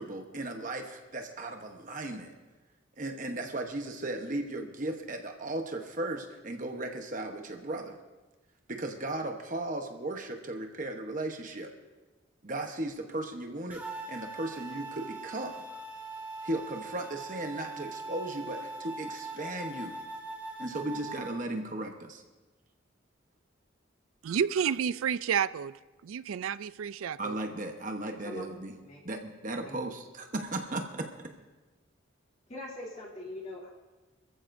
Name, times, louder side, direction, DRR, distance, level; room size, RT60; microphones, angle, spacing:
voice 1, 0.0-2.3 3.0-8.0 8.7-11.7 12.4-15.6 16.4-20.0 20.6-22.2 27.2-28.8 29.0-31.3, right 2 dB, 40° right, 4 dB, 1.0 m, -36 dB
sound 1, 13.7-21.3, right 3 dB, 10° right, 3.4 m, -41 dB
voice 2, 24.2-27.4, right 7 dB, 85° right, 17 dB, 0.4 m, -30 dB
voice 3, 32.5-33.7, left 2 dB, 35° left, -4 dB, 2.7 m, -42 dB
25.5 x 14.5 x 2.6 m, 1.2 s
head